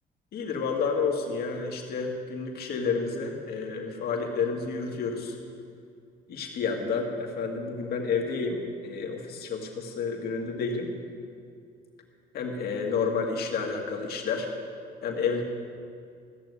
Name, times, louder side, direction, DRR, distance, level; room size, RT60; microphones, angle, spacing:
voice 1, 0.3-5.4 6.3-10.9 12.3-14.5 15.0-15.4, left 5 dB, 65° left, 1 dB, 2.3 m, -30 dB
15.0 x 7.0 x 9.6 m, 2.3 s
cardioid pair, 110°, 17 cm